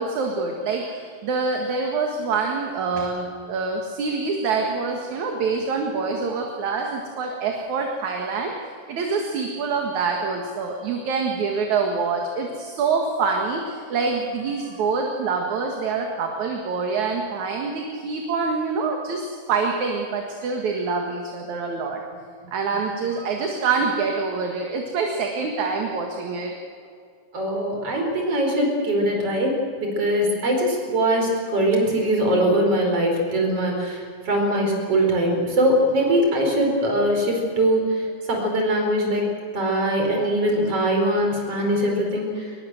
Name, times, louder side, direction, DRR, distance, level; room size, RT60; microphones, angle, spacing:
voice 1, 0.0-22.0 22.5-26.5, right 4 dB, 70° right, 2 dB, 3.1 m, -26 dB
voice 2, 27.3-39.2 39.5-42.5, right 1 dB, 50° right, 2 dB, 5.7 m, -22 dB
23.0 x 21.0 x 7.8 m, 2.3 s
omnidirectional pair, 3.6 m